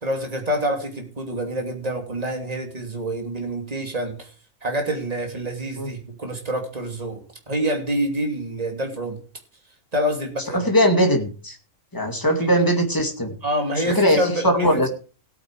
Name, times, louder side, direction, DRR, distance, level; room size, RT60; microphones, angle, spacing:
voice 1, 0.0-4.3 4.6-9.2 9.9-10.6 12.4-12.5 13.4-14.9, equal, 30° right, 3 dB, 2.9 m, -27 dB
voice 2, 10.5-11.6 11.9-13.3 13.9-14.9, equal, 15° left, 4 dB, 2.3 m, -20 dB
17.0 x 8.8 x 4.8 m, 0.36 s
omnidirectional pair, 1.4 m